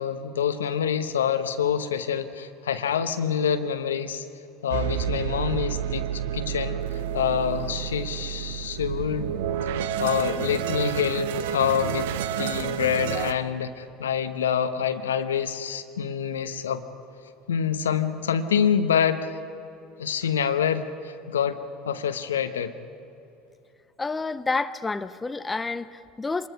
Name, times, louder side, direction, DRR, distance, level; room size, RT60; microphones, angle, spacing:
voice 1, 0.0-4.3 4.6-6.8 7.1-9.3 10.0-12.1 12.4-16.8 17.5-19.4 20.0-21.6 21.8-22.7, left 8 dB, 75° left, 10 dB, 1.0 m, -26 dB
sound 1, 4.7-13.3, right 9 dB, 65° right, 0.8 m, -30 dB
voice 2, 24.0-26.5, left 3 dB, 15° left, 12 dB, 0.7 m, -29 dB
26.0 x 21.0 x 5.6 m, 2.9 s
figure-of-eight pair, 70°, 0 cm